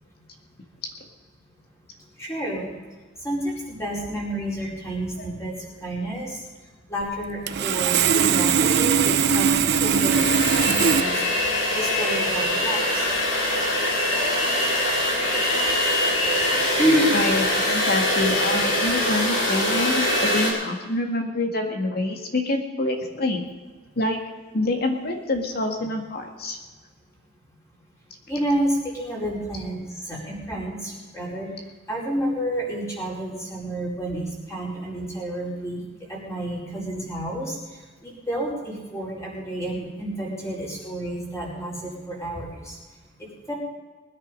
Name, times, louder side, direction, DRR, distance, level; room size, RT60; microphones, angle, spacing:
voice 1, 2.2-2.7 3.2-6.4 6.9-10.3 10.6-13.1 16.8-17.1 28.3-31.5 31.9-35.8 36.1-37.6 38.0-42.7 43.5-43.6, right 1 dB, 15° left, -4 dB, 4.8 m, -29 dB
Sawing, 7.0-7.1 7.5-11.0, right 7 dB, 60° right, 0.6 m, -20 dB
sound 1, 9.2-9.3 9.7-20.5, left 1 dB, 75° left, 4.5 m, -23 dB
voice 2, 17.1-23.4 24.0-24.2 24.5-26.6, left 2 dB, 55° left, 3 dB, 1.9 m, -26 dB
20.5 x 9.8 x 5.3 m, 1.3 s
head